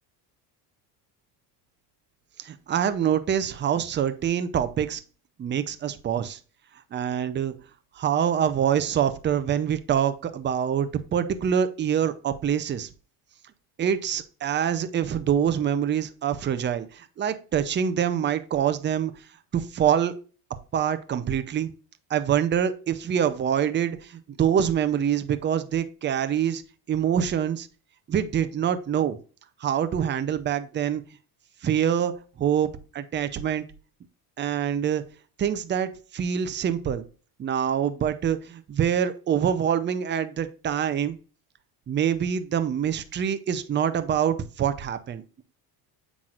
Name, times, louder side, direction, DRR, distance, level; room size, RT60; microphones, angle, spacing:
voice 1, 2.4-5.0 5.4-6.4 6.9-7.5 8.0-12.9 13.8-19.1 19.5-20.1 20.7-21.7 22.1-26.6 26.9-27.7 28.1-29.2 29.6-31.0 31.6-32.1 32.4-33.6 34.4-35.0 35.4-37.0 37.4-41.2 41.9-45.4, right 9 dB, 25° right, 11 dB, 0.6 m, -25 dB
7.5 x 6.0 x 2.5 m, 0.37 s
cardioid pair, 135°, 43 cm